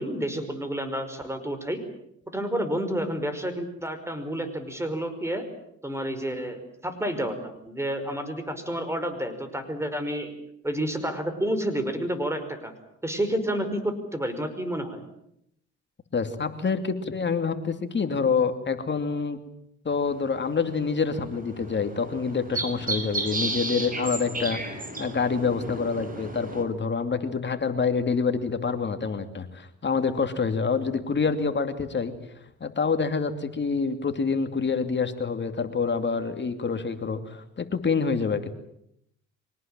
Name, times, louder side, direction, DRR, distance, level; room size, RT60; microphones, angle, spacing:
voice 1, 0.0-1.8 2.3-5.4 5.8-10.3 10.6-12.7 13.0-15.0, right 1 dB, 10° right, 9 dB, 5.3 m, -30 dB
voice 2, 16.1-19.4 19.8-32.1 32.6-38.5, left 5 dB, 35° left, 8 dB, 2.8 m, -27 dB
sound 1, 19.9-26.6, right 2 dB, 25° right, 5.7 m, -34 dB
25.0 x 18.5 x 9.1 m, 0.76 s
cardioid pair, 90°, 30 cm